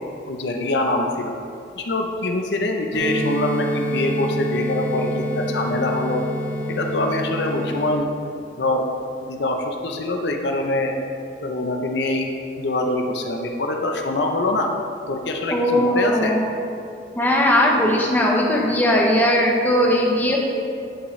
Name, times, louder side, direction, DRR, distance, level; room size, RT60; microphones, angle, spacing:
voice 1, 0.3-1.4 1.8-6.2 6.7-8.1 8.6-8.9 9.2-10.9 11.4-12.3 12.6-14.7 15.1-16.4, left 2 dB, 70° left, 3 dB, 0.6 m, -24 dB
sound 1, 2.9-7.9, equal, 50° left, 1.6 m, -26 dB
voice 2, 15.5-16.5 17.2-20.4, left 1 dB, 10° left, -2 dB, 0.9 m, -18 dB
11.0 x 6.2 x 3.2 m, 2.5 s
head